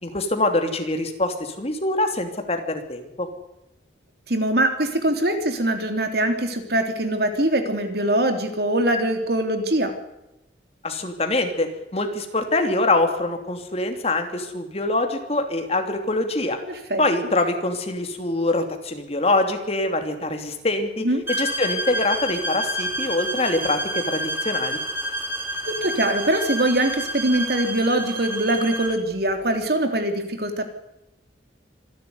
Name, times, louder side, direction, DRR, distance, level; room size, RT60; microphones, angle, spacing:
voice 1, 0.0-3.3 10.8-16.6 17.0-21.1 21.4-24.8, left 2 dB, 35° left, 6 dB, 3.0 m, -24 dB
voice 2, 4.3-9.9 16.7-17.0 21.0-21.2 25.6-30.7, right 1 dB, 60° right, 6 dB, 3.3 m, -23 dB
sound 1, 21.3-29.0, right 1 dB, 15° right, 5.7 m, -29 dB
26.0 x 12.0 x 9.7 m, 0.94 s
head